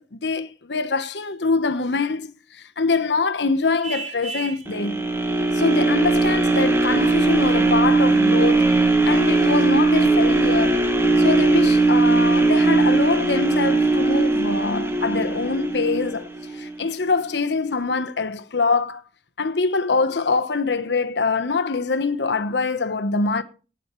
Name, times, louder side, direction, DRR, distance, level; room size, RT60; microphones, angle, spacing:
voice 1, 0.0-5.0 5.5-8.7 9.0-10.9 11.2-16.3 16.5-19.0 19.4-23.4, left 4 dB, 80° left, 1.0 m, -24 dB
Vehicle horn car horn honking, 3.8-4.7, right 4 dB, 40° right, 4.3 m, -33 dB
sound 1, 4.7-16.8 17.2-17.3, right 3 dB, 15° right, 1.7 m, -19 dB
18.0 x 9.0 x 3.1 m
head